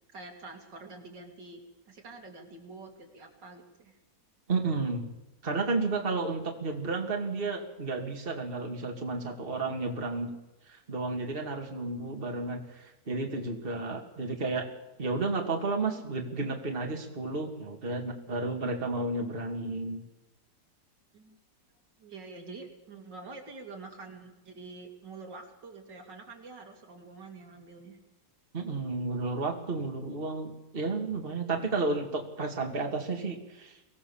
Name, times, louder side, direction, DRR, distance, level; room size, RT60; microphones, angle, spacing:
voice 1, 0.1-4.0 21.1-21.3 22.0-28.0, right 3 dB, 70° right, 2 dB, 3.3 m, -47 dB
voice 2, 4.5-5.1 5.4-10.3 10.7-14.7 15.0-20.0 28.5-33.8, right 3 dB, 30° right, 2 dB, 2.4 m, -32 dB
23.5 x 17.0 x 7.2 m, 0.98 s
omnidirectional pair, 2.0 m